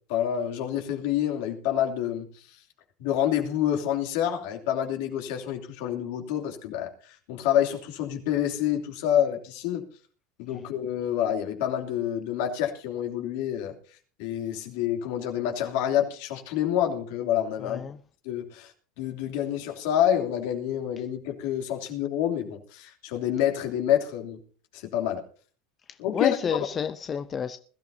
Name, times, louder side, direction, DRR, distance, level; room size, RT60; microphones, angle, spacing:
voice 1, 0.1-2.3 3.0-9.9 10.4-13.8 14.2-17.8 18.2-24.4 24.7-25.2 26.0-26.6, left 10 dB, 75° left, 2.9 m, -28 dB
voice 2, 17.6-18.0 26.1-27.6, left 7 dB, 30° left, 0.7 m, -30 dB
21.0 x 13.0 x 2.8 m
supercardioid pair, 110°, 0 cm